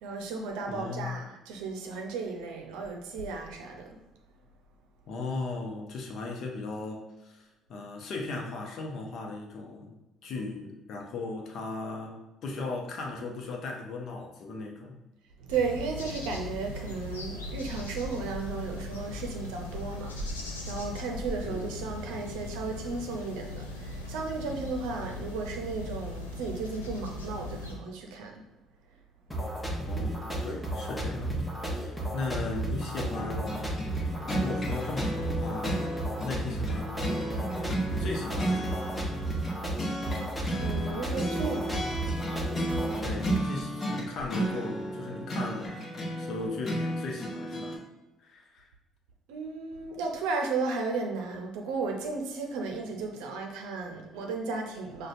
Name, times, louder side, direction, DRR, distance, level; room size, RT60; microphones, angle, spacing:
voice 1, 0.0-4.0 15.4-20.4 20.6-28.4 30.8-30.9 40.6-41.9 49.3-55.1, right 4 dB, 70° right, 2 dB, 0.6 m, -34 dB
voice 2, 0.7-1.1 5.1-10.0 10.2-14.9 21.5-21.7 29.9-33.6 34.3-35.8 36.2-37.2 37.9-38.9 43.0-45.8 46.2-47.9 48.2-48.7, left 3 dB, 55° left, 1 dB, 0.7 m, -37 dB
sound 1, 15.5-27.7, left 2 dB, 85° left, 0.4 m, -39 dB
sound 2, 29.3-43.4, right 1 dB, 5° left, 0.9 m, -33 dB
sound 3, 33.1-47.8, right 1 dB, 35° left, 1.0 m, -33 dB
6.2 x 2.2 x 2.6 m, 1.0 s
figure-of-eight pair, 50°, 0 cm